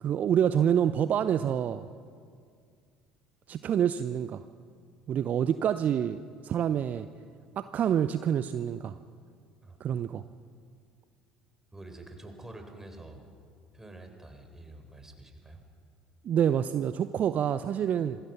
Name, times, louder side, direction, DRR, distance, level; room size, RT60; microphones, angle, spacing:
voice 1, 0.0-1.9 3.5-4.4 5.1-7.1 7.6-9.0 9.8-10.2 16.2-18.2, right 9 dB, 45° right, 12 dB, 0.7 m, -27 dB
voice 2, 11.7-13.3 13.7-15.6, right 2 dB, 10° right, 5 dB, 4.0 m, -47 dB
26.5 x 20.0 x 5.8 m, 2.2 s
figure-of-eight pair, 60°, 4 cm